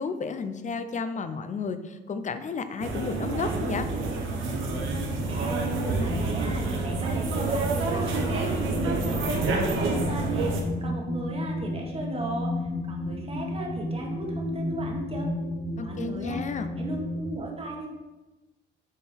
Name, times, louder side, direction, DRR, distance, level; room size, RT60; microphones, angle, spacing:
voice 1, 0.0-3.9 15.8-16.7, left 5 dB, 40° left, 10 dB, 0.6 m, -32 dB
sound 1, 2.8-10.6, right 3 dB, 85° right, 1.1 m, -28 dB
sound 2, 4.7-17.4, left 1 dB, 55° left, 1.9 m, -34 dB
voice 2, 5.3-15.3 15.8-16.4 16.8-17.9, right 2 dB, 30° right, 0 dB, 1.4 m, -36 dB
7.2 x 4.4 x 3.4 m, 1.1 s
cardioid pair, 90°, 20 cm